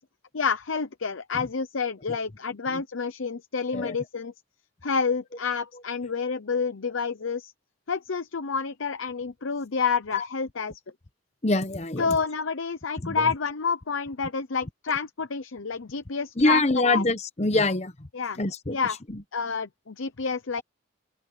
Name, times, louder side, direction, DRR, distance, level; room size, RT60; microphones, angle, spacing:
voice 1, 0.3-4.3 4.8-7.5 7.9-10.8 12.0-17.0 18.1-18.4 18.7-19.0 19.3-20.6, left 5 dB, 85° left, 0.8 m, -29 dB
voice 2, 11.4-12.2 13.0-13.3 16.4-18.1 18.4-18.8 19.1-19.2, left 2 dB, 35° left, 1.0 m, -25 dB
open air
head